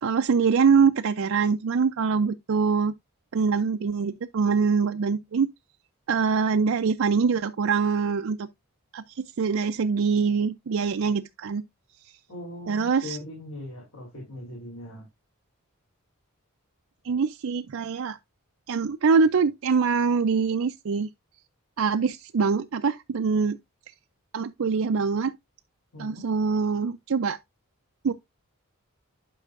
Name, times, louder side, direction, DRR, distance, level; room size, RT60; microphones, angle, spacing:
voice 1, 0.0-2.9 3.3-5.5 6.1-8.5 8.9-11.6 12.7-13.2 17.1-18.2 18.7-21.1 21.8-23.6 24.3-25.3 26.0-27.4 28.0-28.1, right 5 dB, 60° right, 0.4 m, -24 dB
voice 2, 12.3-15.1 25.9-26.2, left 1 dB, 70° left, 3.6 m, -40 dB
11.5 x 5.5 x 2.4 m
head